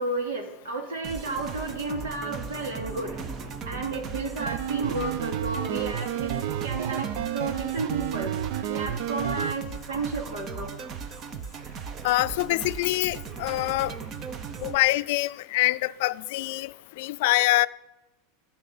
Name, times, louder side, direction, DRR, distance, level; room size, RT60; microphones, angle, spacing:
voice 1, 0.0-3.2 3.7-8.4 8.7-10.7, right 3 dB, 90° right, 2.6 m, -32 dB
sound 1, 1.0-14.8, right 6 dB, 40° right, 0.9 m, -38 dB
sound 2, 1.4-6.9 7.3-7.4 7.5-7.6 7.9-8.0, right 2 dB, 20° right, 1.0 m, -45 dB
sound 3, 4.4-9.5, right 10 dB, 65° right, 0.6 m, -31 dB
voice 2, 12.0-13.9 14.6-17.7, left 19 dB, 70° left, 0.4 m, -25 dB
12.5 x 5.9 x 8.5 m
supercardioid pair, 120°, 0 cm